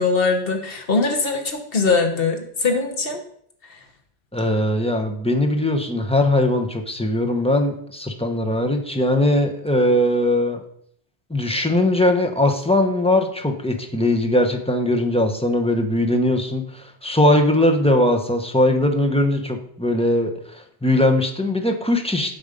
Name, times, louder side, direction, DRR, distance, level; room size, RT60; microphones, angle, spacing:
voice 1, 0.0-3.2 3.7-3.8, left 4 dB, 65° left, 3 dB, 1.5 m, -21 dB
voice 2, 4.3-10.6 11.3-22.4, left 1 dB, 5° left, 3 dB, 0.9 m, -20 dB
8.7 x 5.4 x 5.2 m, 0.65 s
omnidirectional pair, 1.1 m